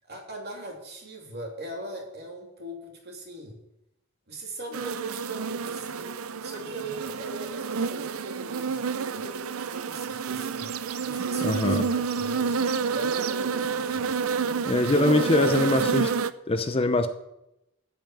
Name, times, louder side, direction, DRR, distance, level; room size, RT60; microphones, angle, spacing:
voice 1, 0.0-3.6 4.3-6.2 6.4-10.7 11.0-12.6 12.9-14.1 14.8-15.7, right 2 dB, 50° right, 0 dB, 3.0 m, -39 dB
sound 1, 4.7-16.3, right 5 dB, 90° right, 0.5 m, -29 dB
voice 2, 11.4-11.8 14.6-16.1 16.5-17.1, left 2 dB, 25° left, 9 dB, 0.7 m, -23 dB
13.5 x 5.7 x 9.2 m, 0.89 s
head